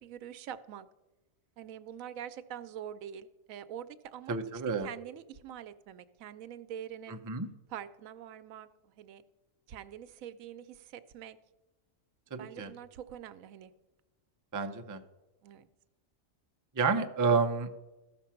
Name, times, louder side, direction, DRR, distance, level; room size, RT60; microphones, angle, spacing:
voice 1, 0.0-0.9 1.6-7.2 7.7-9.2 9.7-11.4 12.3-13.7 15.4-15.7, right 10 dB, 85° right, 13 dB, 1.0 m, -45 dB
voice 2, 4.3-4.9 7.1-7.5 12.3-12.7 14.5-15.0 16.7-17.7, right 4 dB, 30° right, 6 dB, 0.4 m, -30 dB
14.0 x 5.9 x 5.7 m, 1.1 s
omnidirectional pair, 1.4 m